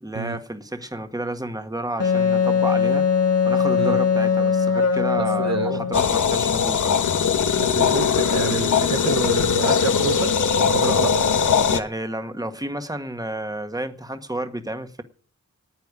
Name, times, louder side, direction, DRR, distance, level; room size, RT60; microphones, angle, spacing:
voice 1, 0.0-3.1 3.4-7.0 11.7-15.0, right 1 dB, 10° right, 1.7 m, -31 dB
Wind instrument woodwind instrument, 2.0-6.1, left 6 dB, 55° left, 1.5 m, -20 dB
voice 2, 5.2-5.9 7.6-10.3 10.6-11.1, right 5 dB, 60° right, 1.1 m, -28 dB
sound 1, 5.9-11.8, left 6 dB, 80° left, 1.1 m, -20 dB
10.0 x 9.1 x 9.8 m
cardioid pair, 55°, 30 cm